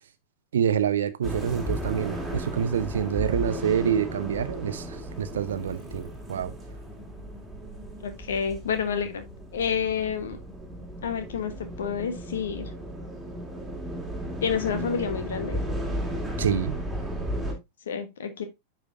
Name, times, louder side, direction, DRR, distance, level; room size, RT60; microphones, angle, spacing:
voice 1, 0.5-6.5 16.4-16.8, right 8 dB, 65° right, 0.7 m, -27 dB
sound 1, 1.2-17.5, equal, 5° right, 2.3 m, -35 dB
voice 2, 8.0-9.2 9.5-10.4 11.0-12.7 14.4-15.6 17.9-18.5, left 7 dB, 65° left, 1.3 m, -29 dB
9.5 x 4.9 x 2.6 m
figure-of-eight pair, 90°, 0 cm